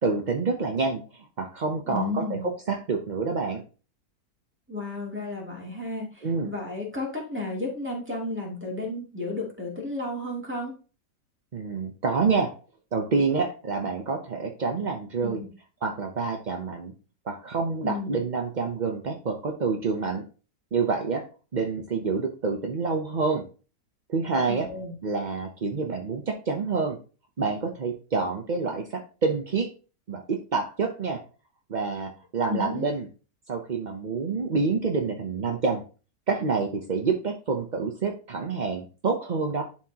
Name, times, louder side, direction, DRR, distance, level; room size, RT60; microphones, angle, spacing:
voice 1, 0.0-2.2 2.7-3.6 6.2-6.5 11.5-12.5 12.9-15.4 15.8-16.9 17.3-20.2 20.7-21.2 21.5-23.4 24.1-24.7 25.0-27.0 27.4-29.7 30.1-31.2 31.7-33.1 33.5-35.8 36.3-39.6, right 4 dB, 45° right, 3 dB, 0.6 m, -27 dB
voice 2, 1.9-2.5 4.7-10.7 15.2-15.5 17.8-18.2 24.5-25.0 32.5-32.9, left 2 dB, 5° right, -2 dB, 2.6 m, -33 dB
11.0 x 4.6 x 2.9 m, 0.35 s
omnidirectional pair, 1.8 m